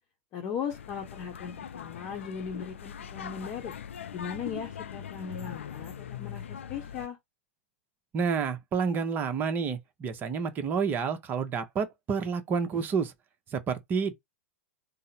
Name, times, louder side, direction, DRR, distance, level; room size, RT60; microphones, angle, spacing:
voice 1, 0.3-3.7 4.1-7.2, left 7 dB, 35° left, 0.8 m, -38 dB
sound 1, 0.7-7.1, left 8 dB, 70° left, 0.4 m, -41 dB
voice 2, 8.1-13.1 13.5-14.1, right 6 dB, 25° right, 0.8 m, -29 dB
3.8 x 2.1 x 4.1 m
figure-of-eight pair, 100°, 7 cm